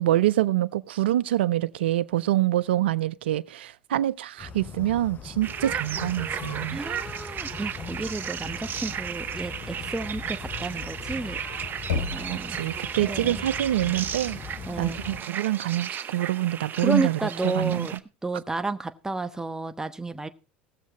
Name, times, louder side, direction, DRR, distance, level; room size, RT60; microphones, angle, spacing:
voice 1, 0.0-6.8 12.2-14.4 14.8-17.9, right 14 dB, 80° right, 0.5 m, -26 dB
sound 1, 4.4-15.2, left 5 dB, 35° left, 0.9 m, -40 dB
sound 2, 5.4-18.0, right 8 dB, 35° right, 0.8 m, -35 dB
voice 2, 6.7-11.4 11.9-12.6 13.1-13.4 14.7-15.0 16.8-18.0 18.2-20.3, right 2 dB, 10° right, 1.0 m, -31 dB
Knock, 11.9-12.8, left 5 dB, 75° left, 2.5 m, -31 dB
17.5 x 7.3 x 4.0 m
hypercardioid pair, 85°, 6 cm